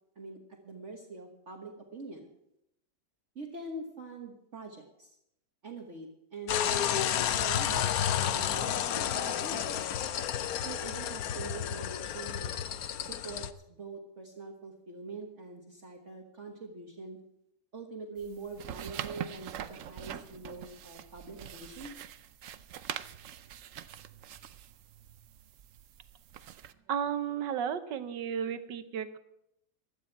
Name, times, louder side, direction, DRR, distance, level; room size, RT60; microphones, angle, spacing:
voice 1, 0.6-2.3 3.3-5.2 5.6-9.8 10.6-12.5 13.0-17.2 17.7-21.9, right 3 dB, 45° right, 1 dB, 1.6 m, -44 dB
sound 1, 6.5-13.5, left 10 dB, 65° left, 1.0 m, -31 dB
sound 2, 18.2-26.7, right 10 dB, 65° right, 0.8 m, -44 dB
voice 2, 26.9-29.2, right 8 dB, 85° right, 10 dB, 1.6 m, -33 dB
15.5 x 11.5 x 4.6 m, 0.80 s
omnidirectional pair, 1.9 m